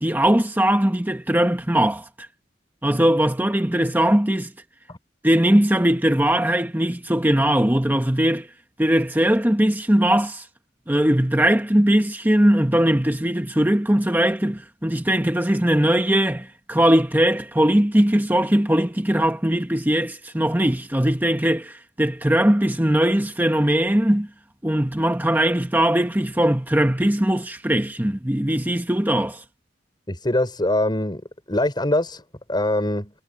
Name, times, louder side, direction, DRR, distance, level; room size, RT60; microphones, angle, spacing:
voice 1, 0.0-2.3 2.8-4.5 5.2-8.5 8.8-10.4 10.9-24.3 24.6-29.4, right 1 dB, 10° right, 1.2 m, -20 dB
voice 2, 30.1-31.2 31.5-32.2 32.5-33.1, left 1 dB, 25° left, 5.9 m, -23 dB
head